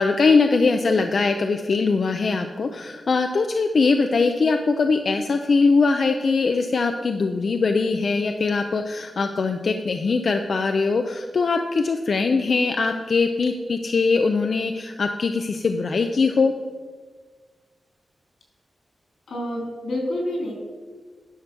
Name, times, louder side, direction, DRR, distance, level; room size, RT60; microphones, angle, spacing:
voice 1, 0.0-16.5, left 4 dB, 50° left, 6 dB, 0.5 m, -21 dB
voice 2, 19.3-20.5, left 1 dB, 85° left, 0 dB, 3.2 m, -28 dB
10.0 x 6.7 x 6.0 m, 1.5 s
wide cardioid pair, 170°, 0 cm